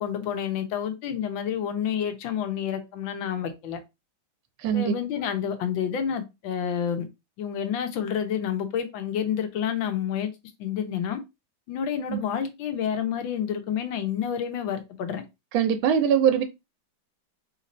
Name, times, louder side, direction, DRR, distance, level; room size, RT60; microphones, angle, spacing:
voice 1, 0.0-3.8 4.7-7.1 7.4-10.3 10.6-11.2 11.7-15.2, left 8 dB, 80° left, 1.5 m, -29 dB
voice 2, 4.6-4.9 12.1-12.2 15.5-16.4, right 8 dB, 85° right, 1.4 m, -22 dB
3.7 x 2.6 x 4.1 m
omnidirectional pair, 2.1 m